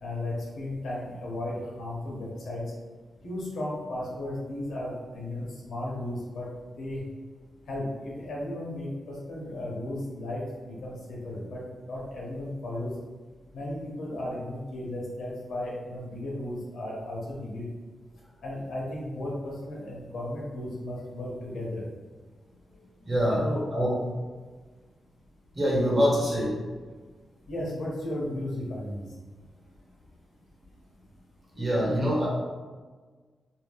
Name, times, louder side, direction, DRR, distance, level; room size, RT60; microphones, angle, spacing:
voice 1, 0.0-2.7 3.2-6.5 6.8-7.0 7.7-10.4 10.7-12.9 13.5-17.7 18.4-21.8 23.4-23.6 27.5-29.1, left 1 dB, 85° left, -4 dB, 0.9 m, -35 dB
voice 2, 23.1-23.4 23.7-24.0 25.5-26.5 31.5-32.3, equal, 35° right, -5 dB, 1.0 m, -24 dB
2.7 x 2.1 x 3.4 m, 1.4 s
wide cardioid pair, 110°, 0 cm